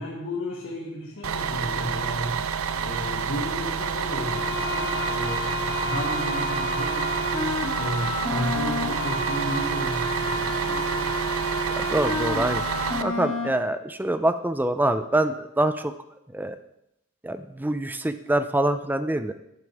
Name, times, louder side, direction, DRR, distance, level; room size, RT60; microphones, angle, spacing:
voice 1, 0.0-2.4 2.8-11.2, equal, 65° left, -6 dB, 1.8 m, -33 dB
Bus, 1.2-13.0, right 6 dB, 70° right, 0.6 m, -29 dB
sound 1, 4.2-13.5, left 2 dB, 20° left, 1.4 m, -30 dB
voice 2, 11.8-15.9 16.3-16.6 17.2-19.3, right 1 dB, 10° right, 10 dB, 0.4 m, -25 dB
12.0 x 9.6 x 3.5 m, 0.83 s
head